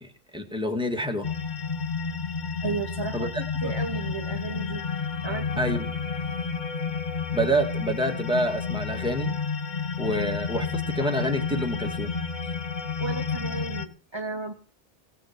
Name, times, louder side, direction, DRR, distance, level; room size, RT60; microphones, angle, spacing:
voice 1, 0.0-1.3 3.1-3.3 3.6-3.7 5.6-5.9 7.3-9.3 10.0-12.1, equal, 5° right, 3 dB, 1.9 m, -27 dB
sound 1, 1.2-13.8, left 5 dB, 50° left, 1.0 m, -30 dB
voice 2, 2.6-4.8 5.2-5.6 6.3-6.5 13.0-14.5, right 4 dB, 25° right, 4 dB, 1.1 m, -34 dB
17.0 x 6.2 x 8.1 m, 0.40 s
omnidirectional pair, 1.0 m